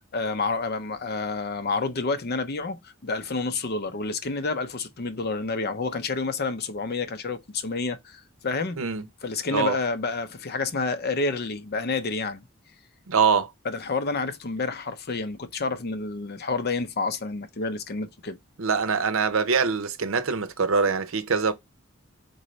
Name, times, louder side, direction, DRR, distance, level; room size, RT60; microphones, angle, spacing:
voice 1, 0.1-8.8 9.2-12.5 13.6-18.4, left 3 dB, 50° left, 0.7 m, -29 dB
voice 2, 13.1-13.5 18.6-21.5, right 5 dB, 70° right, 0.7 m, -23 dB
4.1 x 3.8 x 3.1 m
head